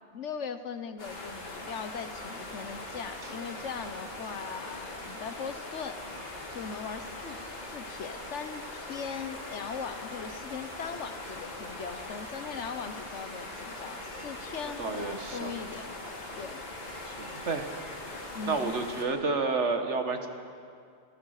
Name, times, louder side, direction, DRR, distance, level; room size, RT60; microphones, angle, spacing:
voice 1, 0.1-6.0 6.5-7.4 7.7-15.9 16.3-16.6 18.3-18.8, left 6 dB, 85° left, 10 dB, 1.4 m, -39 dB
sound 1, 1.0-19.0, left 2 dB, 60° left, 4.0 m, -41 dB
voice 2, 14.8-15.5 17.1-17.7 18.5-20.3, right 4 dB, 80° right, 6 dB, 1.9 m, -30 dB
30.0 x 14.5 x 6.6 m, 2.3 s
omnidirectional pair, 1.2 m